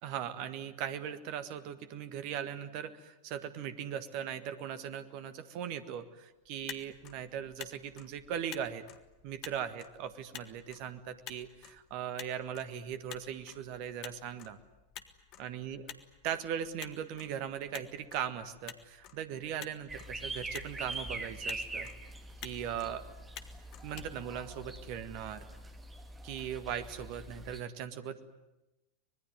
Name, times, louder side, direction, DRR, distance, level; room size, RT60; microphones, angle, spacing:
voice 1, 0.0-8.8 9.2-14.6 15.4-15.9 16.2-21.9 22.4-23.0 23.8-25.4 26.2-28.2, right 9 dB, 45° right, 12 dB, 1.7 m, -39 dB
Motor vehicle (road), 6.4-25.0, left 10 dB, 40° left, 1.6 m, -51 dB
sound 1, 19.9-27.6, right 2 dB, 15° right, 2.5 m, -43 dB
25.0 x 20.5 x 9.5 m, 0.97 s
figure-of-eight pair, 90°, 0 cm